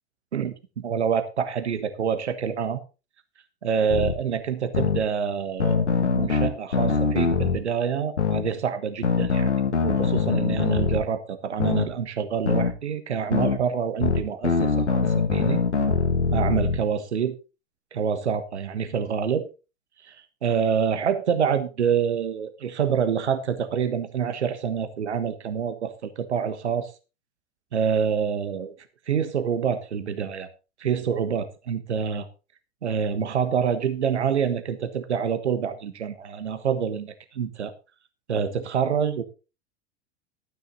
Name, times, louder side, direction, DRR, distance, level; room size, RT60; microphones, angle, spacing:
voice 1, 0.3-2.8 3.6-5.9 6.1-9.5 9.8-15.6 16.3-17.4 17.9-19.5 20.1-26.9 27.7-28.7 29.1-30.5 30.8-32.3 32.8-37.7 38.3-39.2, right 7 dB, 80° right, 10 dB, 1.4 m, -26 dB
sound 1, 3.9-4.1 4.7-5.0 5.6-7.6 8.2-8.4 9.0-11.0 11.6-11.9 12.5-12.7 13.3-13.6 14.0-16.8, left 5 dB, 90° left, 1.8 m, -23 dB
13.0 x 9.3 x 4.0 m, 0.31 s
figure-of-eight pair, 85°, 34 cm